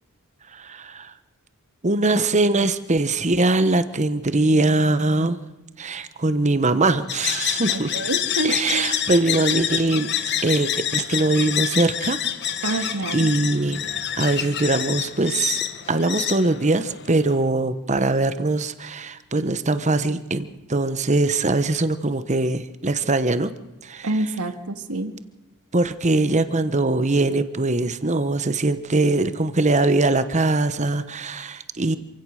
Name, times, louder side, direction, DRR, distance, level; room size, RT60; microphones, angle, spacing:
voice 1, 0.5-1.1 1.8-5.4 5.8-7.9 8.4-10.1 10.4-12.2 12.7-13.9 14.2-15.6 15.9-23.5 23.8-24.1 25.7-32.0, right 2 dB, 30° right, 12 dB, 1.0 m, -22 dB
sound 1, 7.1-17.3, left 10 dB, 50° left, 1.2 m, -27 dB
voice 2, 7.7-8.9 12.6-13.3 24.0-25.1, right 2 dB, 75° right, 8 dB, 1.9 m, -27 dB
27.0 x 16.5 x 6.5 m, 1.0 s
head